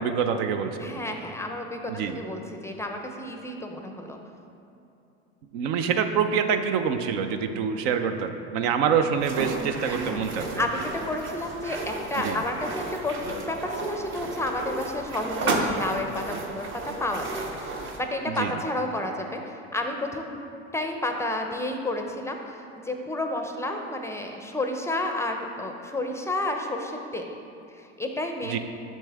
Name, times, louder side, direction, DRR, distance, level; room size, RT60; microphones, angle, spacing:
voice 1, 0.0-0.9 1.9-2.2 5.5-10.7 12.2-12.4 18.3-18.6 28.4-28.6, right 7 dB, 70° right, 8 dB, 0.6 m, -26 dB
voice 2, 0.8-4.2 9.9-16.7 17.0-17.7 18.0-20.4 20.7-27.3 28.0-28.6, left 1 dB, 10° left, 3 dB, 0.5 m, -31 dB
sound 1, 9.2-18.0, right 2 dB, 35° right, 0.8 m, -33 dB
7.4 x 6.4 x 3.4 m, 2.8 s
hypercardioid pair, 95°, 34 cm